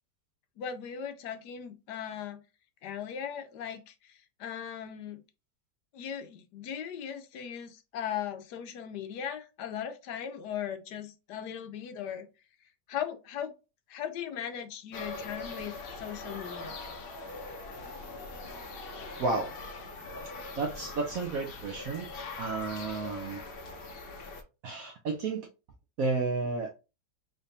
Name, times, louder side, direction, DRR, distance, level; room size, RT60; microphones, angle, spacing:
voice 1, 0.6-2.4 2.8-5.2 5.9-12.3 12.9-13.5 13.9-16.8, left 9 dB, 75° left, 1.2 m, -38 dB
sound 1, 14.9-24.4, left 3 dB, 55° left, 0.6 m, -42 dB
voice 2, 19.2-19.5 20.6-22.1 22.4-23.4 24.6-25.5 26.0-26.8, right 3 dB, 65° right, 0.9 m, -32 dB
3.7 x 3.4 x 2.7 m
omnidirectional pair, 1.9 m